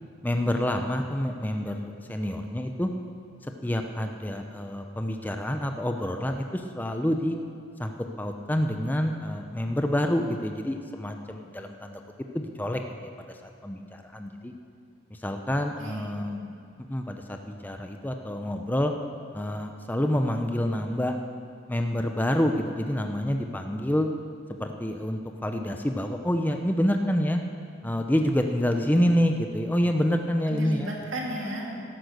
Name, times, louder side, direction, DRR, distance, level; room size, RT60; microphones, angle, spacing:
voice 1, 0.2-2.9 3.4-7.4 7.8-12.0 12.3-14.5 15.1-16.4 16.8-18.9 19.3-21.2 21.7-24.1 24.6-27.4 27.8-30.9, equal, 10° left, 4 dB, 0.5 m, -27 dB
voice 2, 15.8-16.4 30.5-31.8, equal, 85° right, -2 dB, 2.6 m, -35 dB
13.0 x 10.5 x 6.6 m, 2.4 s
head